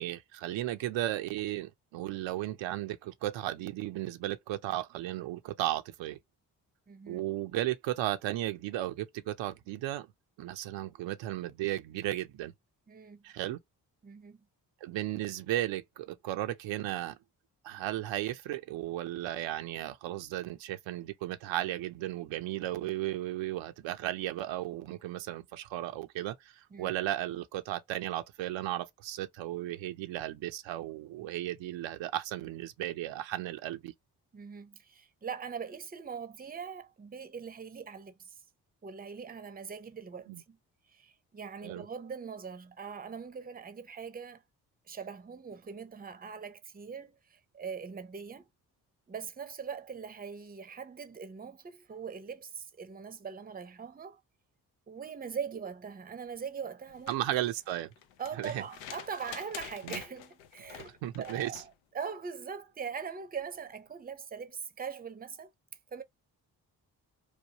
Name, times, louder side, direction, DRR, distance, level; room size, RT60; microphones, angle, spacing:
voice 1, 0.0-6.2 7.1-10.1 10.4-12.5 13.2-13.6 14.8-17.2 17.6-33.9 40.3-40.4 41.6-41.8 57.1-57.9 58.4-58.6 59.8-60.0 61.0-61.6, right 14 dB, 75° right, 0.6 m, -35 dB
voice 2, 6.9-7.2 12.9-13.2 14.0-14.4 26.7-26.9 34.3-38.4 38.8-40.6 40.9-44.4 44.9-48.5 49.1-54.2 54.9-57.1 58.2-65.5 65.9-66.0, right 6 dB, 20° right, 0.6 m, -42 dB
sound 1, 56.9-61.7 63.4-63.5, left 9 dB, 85° left, 0.6 m, -47 dB
3.0 x 2.2 x 2.7 m
hypercardioid pair, 40°, 45 cm